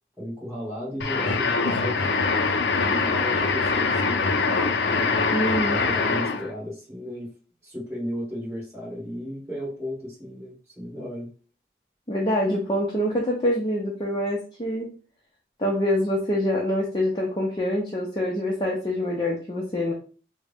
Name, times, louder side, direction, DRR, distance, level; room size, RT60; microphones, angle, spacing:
voice 1, 0.2-2.1 2.8-4.4 4.9-5.4 5.8-7.3 7.6-11.3, left 1 dB, 10° right, -10 dB, 1.9 m, -34 dB
sound 1, 1.0-6.5, left 4 dB, 80° left, 0.5 m, -23 dB
voice 2, 5.3-5.9 12.1-14.9 15.6-19.9, left 1 dB, 25° left, -3 dB, 0.6 m, -25 dB
3.7 x 2.1 x 3.5 m, 0.38 s
head